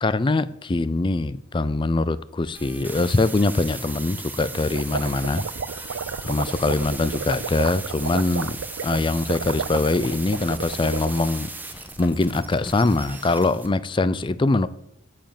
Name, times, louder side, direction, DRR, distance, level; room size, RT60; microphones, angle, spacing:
voice 1, 0.0-5.5 6.2-11.5 11.8-14.7, left 2 dB, 25° left, 0.4 m, -23 dB
sound 1, 2.5-13.7, right 3 dB, 10° right, 1.0 m, -37 dB
sound 2, 4.5-11.4, right 5 dB, 90° right, 0.6 m, -33 dB
8.9 x 7.5 x 7.5 m
head